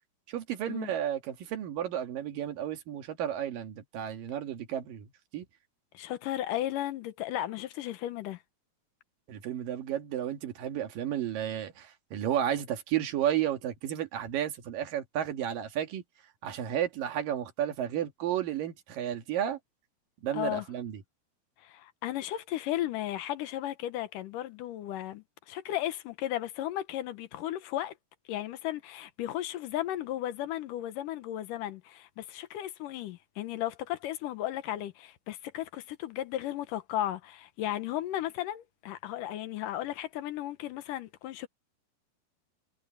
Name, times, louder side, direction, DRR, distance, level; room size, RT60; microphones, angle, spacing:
voice 1, 0.3-5.5 9.3-16.0 16.4-19.6 20.2-21.0, right 10 dB, 80° right, 3.5 m, -32 dB
voice 2, 5.9-8.4 20.3-20.7 21.6-27.9 28.3-41.5, left 13 dB, 75° left, 2.5 m, -35 dB
omnidirectional pair, 3.9 m